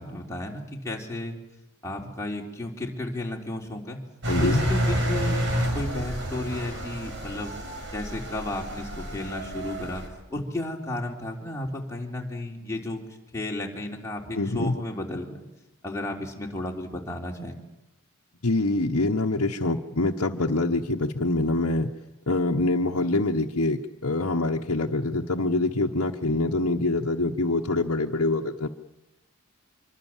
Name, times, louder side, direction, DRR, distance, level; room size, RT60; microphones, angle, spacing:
voice 1, 0.0-1.4 1.8-4.0 4.4-5.4 5.7-7.5 7.9-10.0 10.3-13.0 13.3-15.4 15.8-17.6, left 1 dB, 15° left, -1 dB, 3.6 m, -33 dB
Engine, 4.2-10.1, equal, 55° right, 5.7 m, -29 dB
voice 2, 4.3-4.6 14.3-14.7 18.4-21.9 22.3-28.7, left 2 dB, 70° left, -2 dB, 1.3 m, -25 dB
26.0 x 23.5 x 7.4 m, 0.94 s
head